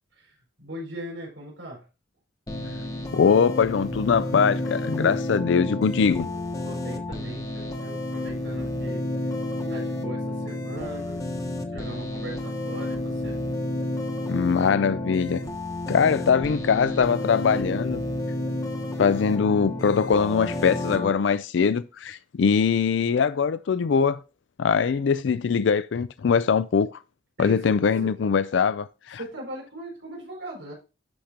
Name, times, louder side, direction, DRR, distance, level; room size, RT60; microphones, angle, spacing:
voice 1, 0.2-1.9 6.6-9.1 9.7-11.3 11.7-13.4 27.4-27.6 28.0-28.1 29.2-30.7, right 1 dB, 85° right, 4.7 m, -39 dB
sound 1, 2.5-21.1, left 1 dB, 20° left, 0.9 m, -31 dB
voice 2, 3.1-6.3 14.3-15.4 15.9-18.0 19.0-24.2 24.6-26.9 27.4-29.2, left 6 dB, 80° left, 0.4 m, -22 dB
11.5 x 5.1 x 2.9 m
head